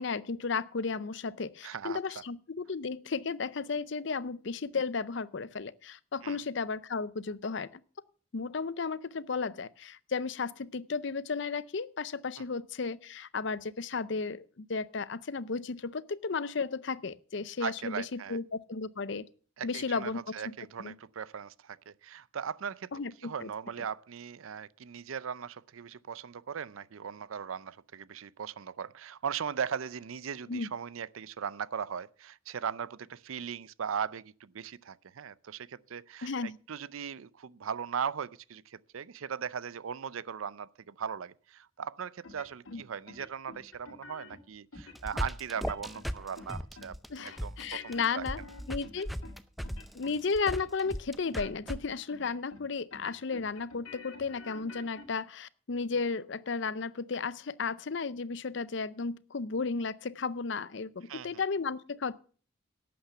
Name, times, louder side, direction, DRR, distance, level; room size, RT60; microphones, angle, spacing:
voice 1, 0.0-7.8 8.3-19.3 19.6-20.9 22.9-23.5 30.5-30.7 36.2-36.6 42.7-42.8 47.1-48.4 48.7-49.1 49.9-62.2, left 4 dB, 60° left, 0.6 m, -34 dB
voice 2, 1.6-2.0 6.2-6.4 12.4-12.5 17.6-18.4 19.6-22.9 23.2-46.9 47.2-48.2 61.1-61.4, right 7 dB, 80° right, 0.5 m, -38 dB
sound 1, 42.2-42.8 43.1-44.4 44.7-45.2 45.5-46.1 46.4-46.9 47.2-49.4 49.6-50.2 50.4-51.0 51.3-51.8 52.1-52.6 52.9-55.1, left 3 dB, 90° left, 2.1 m, -49 dB
sound 2, 44.8-51.8, equal, ahead, 0.5 m, -37 dB
11.5 x 8.5 x 6.8 m
head